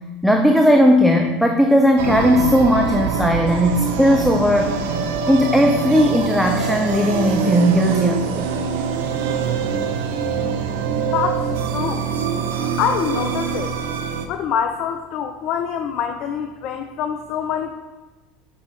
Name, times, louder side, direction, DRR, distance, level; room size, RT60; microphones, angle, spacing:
voice 1, 0.2-4.8 5.3-8.5, equal, ahead, 3 dB, 0.5 m, -17 dB
sound 1, 2.0-14.3, right 6 dB, 70° right, 0.5 m, -24 dB
voice 2, 11.0-11.5 11.7-12.1 12.8-13.8 14.3-17.7, left 8 dB, 55° left, 6 dB, 0.4 m, -25 dB
6.0 x 5.3 x 3.2 m, 1.2 s
hypercardioid pair, 75°, 0 cm